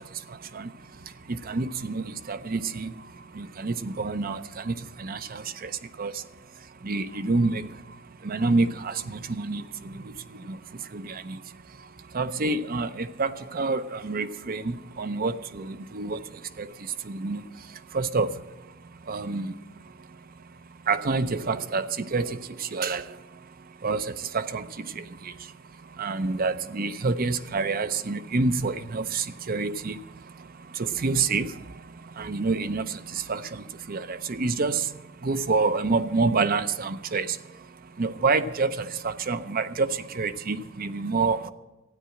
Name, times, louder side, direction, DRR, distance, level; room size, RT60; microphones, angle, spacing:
voice 1, 1.3-2.9 3.4-5.7 6.0-6.1 6.8-7.7 8.2-9.9 10.5-10.6 10.9-11.4 12.1-16.2 16.6-16.7 17.1-17.4 17.9-18.3 19.1-19.5 20.9-23.0 23.8-24.7 25.0-25.1 26.0-30.0 30.8-31.5 32.2-34.8 35.2-37.4 38.0-41.5, right 4 dB, 45° right, 0.7 m, -27 dB
13.5 x 9.8 x 7.7 m
head